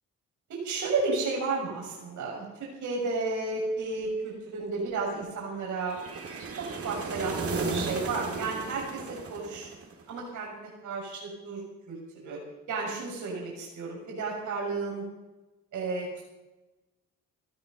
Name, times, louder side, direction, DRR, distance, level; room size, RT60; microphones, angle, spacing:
voice 1, 0.5-6.0 6.6-9.7 10.1-11.6 11.9-12.0 12.2-12.4 12.7-15.0 15.7-16.2, right 3 dB, 75° right, -2 dB, 6.6 m, -32 dB
sound 1, 5.9-10.1, right 4 dB, 50° right, 3.4 m, -35 dB
18.0 x 14.0 x 5.5 m, 1.1 s
cardioid pair, 90°, 30 cm